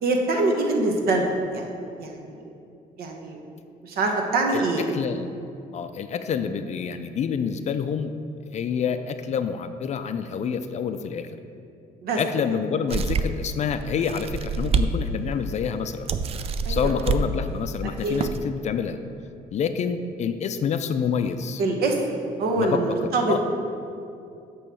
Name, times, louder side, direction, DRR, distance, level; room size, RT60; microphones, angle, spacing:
voice 1, 0.0-1.6 2.0-2.1 2.3-2.5 3.0-3.4 3.8-4.8 12.0-12.2 16.7-16.9 18.0-18.2 21.6-23.4, right 2 dB, 65° right, 2 dB, 1.1 m, -24 dB
voice 2, 4.9-5.3 5.7-8.1 8.5-11.3 12.2-16.1 16.7-19.0 19.5-21.6 22.6-23.4, left 7 dB, 45° left, 9 dB, 0.4 m, -27 dB
sound 1, 12.9-13.5 14.0-14.9 15.3-15.4 16.1-17.2 17.9-18.4, right 5 dB, 35° right, 0.4 m, -26 dB
8.7 x 3.1 x 6.2 m, 2.5 s
cardioid pair, 110°, 17 cm